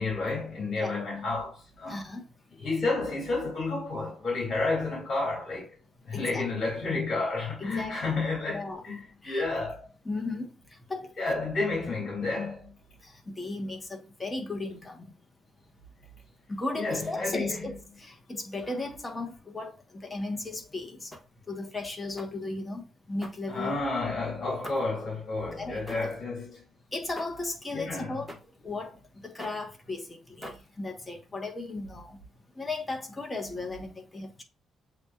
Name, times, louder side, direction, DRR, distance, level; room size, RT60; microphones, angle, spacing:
voice 1, 0.0-2.1 2.6-5.8 6.0-9.0 9.2-9.9 11.2-12.7 16.7-17.7 23.5-26.6 27.7-28.1, left 3 dB, 45° left, 2.6 m, -31 dB
voice 2, 1.9-2.2 6.1-6.5 7.6-8.2 8.5-8.8 9.2-9.4 10.0-10.5 10.9-11.4 13.0-15.1 16.5-21.1 21.5-22.8 23.1-23.8 24.4-24.6 25.6-26.1 26.9-28.3 28.6-28.9 29.2-32.2 32.6-34.4, left 2 dB, 20° left, 1.2 m, -36 dB
sound 1, 21.1-21.5 22.2-22.5 23.2-23.9 24.6-25.0 25.9-26.2 27.1-27.5 28.3-28.6 29.4-29.7 30.4-30.9, equal, 5° left, 1.4 m, -45 dB
7.7 x 2.9 x 2.4 m
cardioid pair, 90°, 0 cm